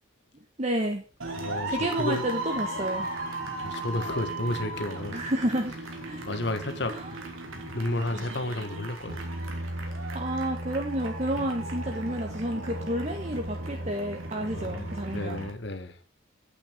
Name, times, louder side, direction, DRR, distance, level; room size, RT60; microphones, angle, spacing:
voice 1, 0.6-1.0 1.7-3.1 5.1-6.3 6.9-7.2 10.1-15.5, right 1 dB, 35° right, 1.2 m, -30 dB
sound 1, 1.2-15.5, right 1 dB, 90° right, 3.1 m, -36 dB
voice 2, 1.4-2.2 3.6-5.2 6.2-7.3 7.6-9.3 14.4-16.0, left 2 dB, 55° left, 1.5 m, -32 dB
9.2 x 8.6 x 5.1 m
head